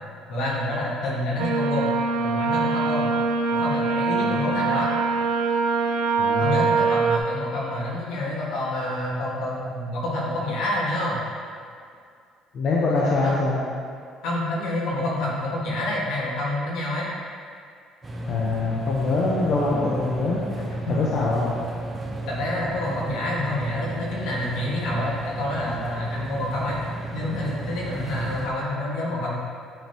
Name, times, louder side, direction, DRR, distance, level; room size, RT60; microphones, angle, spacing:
voice 1, 0.3-1.9 2.2-3.1 3.5-4.9 6.4-11.2 12.9-13.4 14.2-17.1 20.5-20.9 22.3-26.8 27.1-29.3, left 1 dB, 75° left, -5 dB, 1.8 m, -28 dB
sound 1, 1.4-7.2, right 4 dB, 80° right, 0.5 m, -23 dB
voice 2, 6.2-6.6 12.5-13.6 18.3-20.4 20.9-21.5, left 3 dB, 50° left, -5 dB, 0.9 m, -24 dB
sound 2, 18.0-28.5, right 2 dB, 20° right, 0.9 m, -33 dB
8.7 x 5.3 x 3.0 m, 2.2 s
cardioid pair, 125°, 0 cm